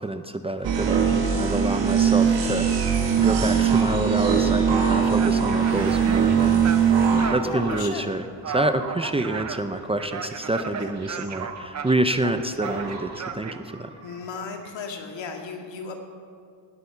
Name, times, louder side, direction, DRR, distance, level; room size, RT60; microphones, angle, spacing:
voice 1, 0.0-13.9, right 1 dB, 15° right, 9 dB, 0.5 m, -28 dB
sound 1, 0.6-7.3, right 7 dB, 85° right, 2.1 m, -21 dB
sound 2, 0.9-1.7 2.4-3.4 3.7-5.2 5.5-10.0 10.3-12.1 12.4-14.9, right 3 dB, 65° right, 3.7 m, -41 dB
sound 3, 5.1-13.6, right 6 dB, 40° right, 0.8 m, -35 dB
voice 2, 7.4-8.1 10.6-10.9 14.0-15.9, left 5 dB, 80° left, 3 dB, 2.1 m, -35 dB
18.5 x 8.3 x 7.0 m, 2.4 s
cardioid pair, 130°, 43 cm